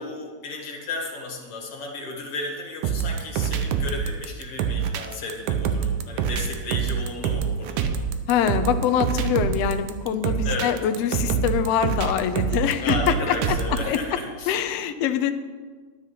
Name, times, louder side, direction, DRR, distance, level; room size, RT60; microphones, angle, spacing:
voice 1, 0.0-7.9 10.4-10.8 12.8-14.5, left 3 dB, 45° left, 0 dB, 2.8 m, -33 dB
sound 1, 2.8-14.0, right 7 dB, 75° right, 2.2 m, -25 dB
voice 2, 8.3-13.6 13.8-14.0 14.5-15.3, left 9 dB, 75° left, 9 dB, 1.5 m, -24 dB
11.5 x 11.0 x 5.7 m, 1.5 s
omnidirectional pair, 3.8 m